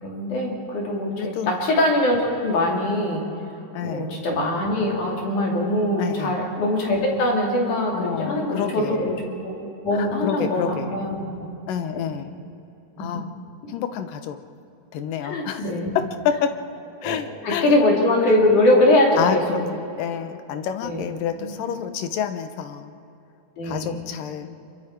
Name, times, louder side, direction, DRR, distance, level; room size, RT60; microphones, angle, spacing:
voice 1, 0.0-3.2 3.8-11.5 11.9-12.2 13.0-13.1 15.2-16.0 17.0-17.2 17.4-19.4 20.8-21.0 21.3-21.7 23.6-24.1, left 1 dB, 65° left, -2 dB, 4.3 m, -22 dB
voice 2, 1.2-1.5 3.7-4.1 6.0-6.4 7.9-9.2 10.0-11.1 11.7-12.3 13.0-13.3 13.7-14.4 14.9-15.6 16.2-16.5 17.0-17.7 19.2-22.9 23.6-24.5, left 8 dB, 85° left, 9 dB, 2.6 m, -28 dB
25.5 x 23.5 x 4.5 m, 2.8 s
omnidirectional pair, 3.8 m